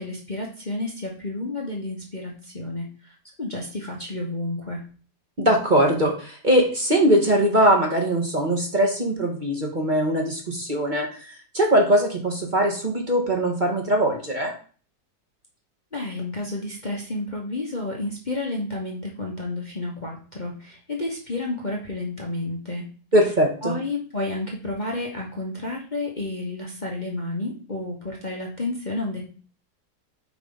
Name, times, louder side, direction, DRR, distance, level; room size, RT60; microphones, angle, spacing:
voice 1, 0.0-4.8 15.9-22.8 23.6-29.2, left 2 dB, 30° left, -2 dB, 1.3 m, -31 dB
voice 2, 5.4-11.3 11.5-14.5 23.1-23.7, right 1 dB, 30° right, 1 dB, 1.5 m, -21 dB
8.9 x 4.6 x 4.0 m, 0.41 s
omnidirectional pair, 1.8 m